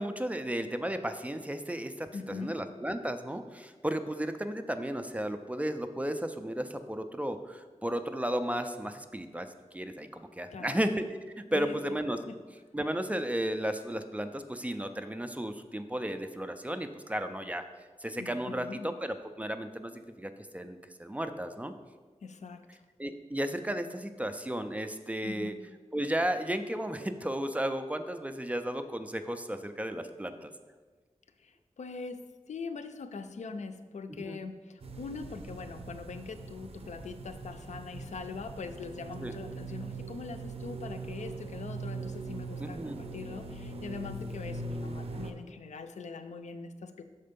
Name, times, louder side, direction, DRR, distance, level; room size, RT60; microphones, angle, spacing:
voice 1, 0.0-9.5 9.7-11.0 11.4-12.2 12.7-17.6 18.0-21.7 23.0-25.5 25.9-30.5 34.1-34.4 39.2-39.3 42.6-43.0, right 1 dB, 10° right, 8 dB, 0.4 m, -34 dB
voice 2, 2.1-2.6 10.5-10.9 11.5-12.0 12.3-12.4 18.1-18.9 22.2-22.8 25.2-25.6 31.4-47.0, left 4 dB, 90° left, 9 dB, 0.4 m, -42 dB
sound 1, 34.8-45.3, right 3 dB, 55° right, 0.6 m, -41 dB
6.5 x 4.3 x 5.2 m, 1.4 s
wide cardioid pair, 105°, 12 cm